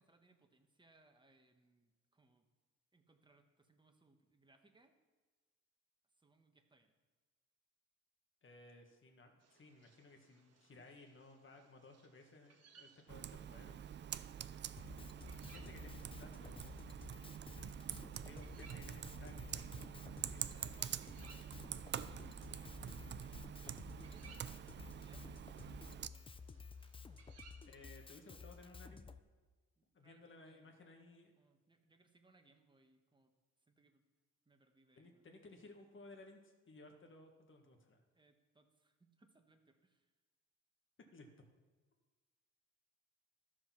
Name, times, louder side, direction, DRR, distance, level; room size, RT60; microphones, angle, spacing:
voice 1, 0.0-2.4 2.9-4.9 6.1-6.9 10.8-10.9 20.1-26.3 29.8-30.7 31.4-33.3 33.6-34.0 34.4-35.3 38.1-40.1, right 2 dB, 15° right, 5 dB, 1.3 m, -70 dB
voice 2, 8.4-13.8 15.5-17.0 18.2-20.6 27.6-29.0 29.9-31.3 35.0-38.0 41.1-41.3, left 2 dB, 40° left, 3 dB, 1.8 m, -59 dB
sound 1, 9.4-28.7, right 5 dB, 55° right, 1.4 m, -67 dB
Computer keyboard, 13.1-26.1, right 9 dB, 40° right, 0.4 m, -46 dB
Drum kit, 14.8-29.2, left 4 dB, 20° left, 0.5 m, -54 dB
13.0 x 5.0 x 5.9 m, 1.4 s
cardioid pair, 90°, 30 cm